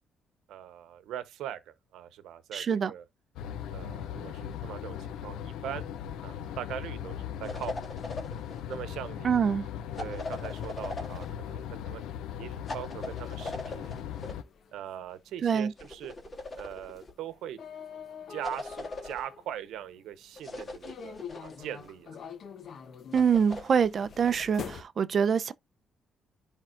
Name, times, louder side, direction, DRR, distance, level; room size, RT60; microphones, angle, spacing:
voice 1, 0.5-3.0 3.7-5.9 6.2-7.7 8.0-8.2 8.7-9.3 10.0-14.0 14.7-16.1 16.5-17.6 18.3-21.2 21.4-22.2, right 10 dB, 85° right, 0.9 m, -41 dB
voice 2, 2.5-2.9 9.2-9.7 15.4-15.7 23.1-25.5, right 7 dB, 50° right, 0.5 m, -25 dB
sound 1, 3.4-14.4, left 9 dB, 90° left, 0.6 m, -39 dB
sound 2, 7.4-8.8 10.0-11.4 12.7-14.4 15.8-17.1 18.4-19.3 20.4-21.9 23.1-24.5, left 2 dB, 35° left, 2.4 m, -41 dB
sound 3, 10.3-20.1 20.8-24.8, left 7 dB, 60° left, 0.9 m, -46 dB
10.5 x 3.6 x 2.5 m
cardioid pair, 90°, 0 cm